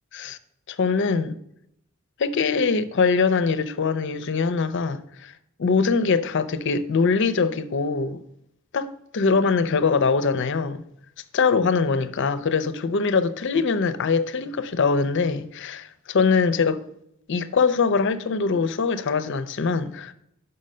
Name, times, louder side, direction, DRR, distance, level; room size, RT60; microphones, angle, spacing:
voice 1, 0.7-1.4 2.2-5.3 5.6-8.2 8.7-10.8 11.3-16.8 17.3-20.1, left 4 dB, 60° left, 0.5 m, -23 dB
6.4 x 5.6 x 5.5 m
head